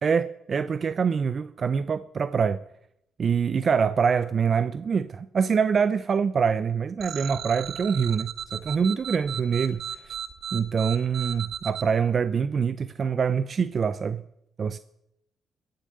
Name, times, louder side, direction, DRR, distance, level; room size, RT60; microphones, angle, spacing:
voice 1, 0.0-2.6 3.2-10.1 10.5-14.2 14.6-14.8, right 6 dB, 45° right, 0.4 m, -25 dB
sound 1, 7.0-11.8, right 9 dB, 65° right, 1.0 m, -35 dB
17.0 x 6.5 x 6.6 m
cardioid pair, 90°, 0 cm